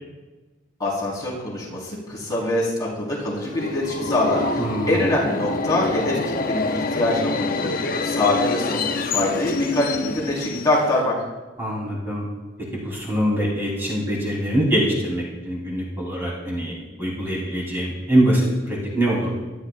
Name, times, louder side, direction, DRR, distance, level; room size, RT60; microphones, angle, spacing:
voice 1, 0.8-7.7 8.0-11.1, left 1 dB, 20° left, -6 dB, 4.1 m, -24 dB
Subway metro underground, 3.3-11.1, left 3 dB, 50° left, 0.7 m, -27 dB
voice 2, 4.6-5.1 11.6-12.3 12.7-19.3, right 1 dB, 10° right, -6 dB, 3.5 m, -23 dB
21.5 x 12.0 x 2.5 m, 1.2 s
head